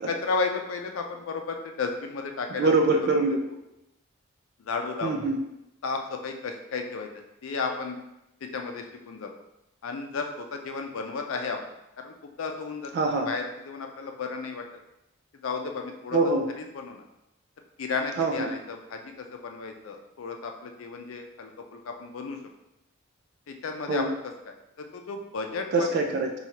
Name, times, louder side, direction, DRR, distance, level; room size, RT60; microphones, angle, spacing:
voice 1, 0.1-2.7 4.6-5.3 5.8-8.0 8.4-9.3 9.8-11.6 12.0-14.6 15.4-16.2 16.6-17.0 17.8-22.4 23.5-24.2 24.5-26.0, left 4 dB, 80° left, 4 dB, 0.5 m, -33 dB
voice 2, 2.5-3.4 5.0-5.4 12.9-13.3 16.1-16.5 18.2-18.5 23.9-24.1 25.7-26.3, right 3 dB, 55° right, 3 dB, 0.3 m, -24 dB
4.4 x 2.3 x 2.8 m, 0.87 s
head